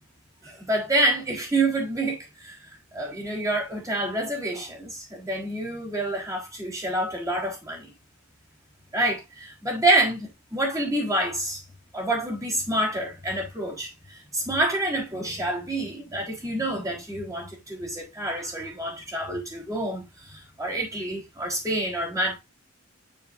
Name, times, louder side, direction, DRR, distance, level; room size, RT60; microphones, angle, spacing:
voice 1, 0.4-2.6 2.9-7.9 8.9-11.6 11.9-13.9 14.3-20.0 20.3-22.4, right 1 dB, 15° right, 4.1 m, -27 dB
8.1 x 7.1 x 2.7 m
head